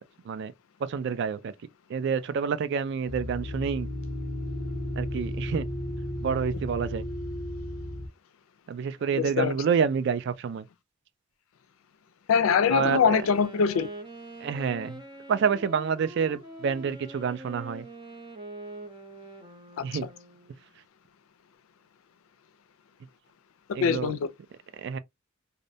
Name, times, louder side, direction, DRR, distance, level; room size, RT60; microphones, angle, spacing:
voice 1, 0.8-1.5 1.9-3.9 5.0-5.7 6.2-7.1 8.7-10.7 12.7-13.2 14.4-15.0 15.3-17.9 19.8-20.1 23.7-24.1 24.8-25.0, right 6 dB, 55° right, 0.3 m, -28 dB
sound 1, 3.1-8.1, left 1 dB, 50° left, 0.7 m, -34 dB
voice 2, 9.2-9.5 12.3-13.9 23.8-24.3, left 6 dB, 85° left, 0.4 m, -23 dB
Wind instrument woodwind instrument, 12.5-20.6, right 1 dB, 25° right, 0.6 m, -44 dB
2.6 x 2.1 x 2.6 m
head